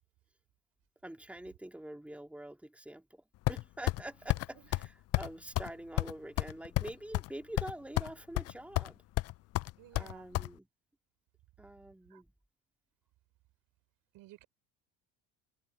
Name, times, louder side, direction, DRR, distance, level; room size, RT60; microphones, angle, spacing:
voice 1, 1.0-9.0 9.9-10.7 11.6-12.3, right 1 dB, 5° right, 2.9 m, -46 dB
sound 1, 3.5-4.0 4.3-4.5 4.7-4.9 5.1-5.3 5.6-5.7 6.0-7.3 7.6-8.1 8.4-8.9 9.2-10.5, left 18 dB, 45° left, 0.4 m, -31 dB
voice 2, 4.5-4.9 9.8-10.3 12.1-12.2 14.1-14.4, right 17 dB, 70° right, 4.9 m, -56 dB
supercardioid pair, 90°, 35 cm